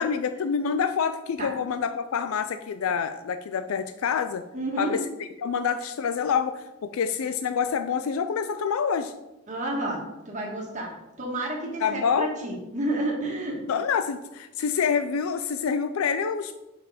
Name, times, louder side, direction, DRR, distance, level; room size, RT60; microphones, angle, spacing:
voice 1, 0.0-4.4 4.8-9.1 11.8-12.3 13.7-16.6, left 6 dB, 85° left, 10 dB, 0.4 m, -27 dB
voice 2, 4.5-4.9 9.5-10.0 10.2-10.9 11.2-13.6, right 1 dB, 35° right, -1 dB, 1.7 m, -30 dB
5.9 x 5.6 x 5.0 m, 0.98 s
head